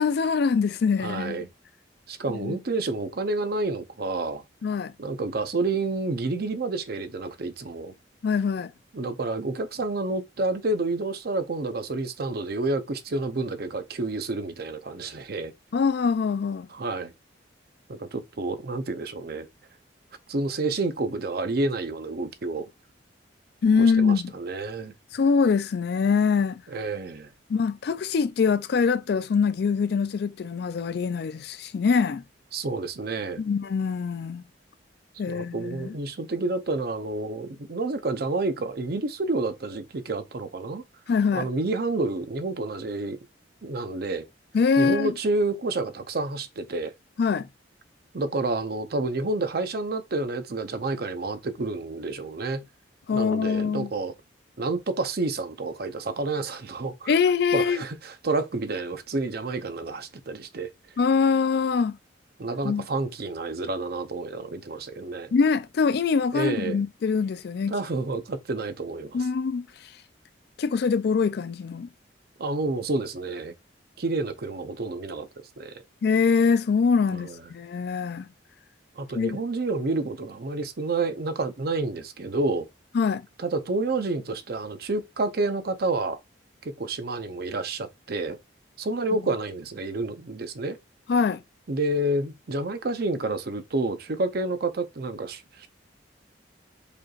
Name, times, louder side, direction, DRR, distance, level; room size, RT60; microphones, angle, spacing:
voice 1, 0.0-1.4 2.4-2.6 4.6-4.9 8.2-8.7 15.7-16.7 23.6-24.3 25.1-26.6 27.5-32.2 33.4-34.4 35.2-36.0 41.1-41.5 44.5-45.1 47.2-47.5 53.1-53.9 57.1-57.8 61.0-62.0 62.6-62.8 65.3-67.8 69.1-69.7 70.6-71.9 76.0-78.3 79.2-79.4 82.9-83.3 91.1-91.4, left 5 dB, 55° left, 0.3 m, -23 dB
voice 2, 1.0-1.5 2.1-4.4 5.0-7.9 8.9-15.5 16.7-17.1 17.9-19.5 20.3-22.7 23.8-24.9 26.7-27.3 32.5-33.4 35.3-40.8 41.3-43.2 43.6-44.3 44.8-46.9 48.1-52.6 53.1-54.1 54.6-57.1 57.5-60.7 62.4-65.3 66.3-66.8 67.7-69.3 72.4-73.5 74.0-75.3 75.6-75.7 77.1-77.4 79.0-82.7 83.4-86.2 86.6-88.4 88.8-90.8 91.7-95.7, right 2 dB, 55° right, 0.6 m, -29 dB
5.0 x 4.4 x 2.4 m
head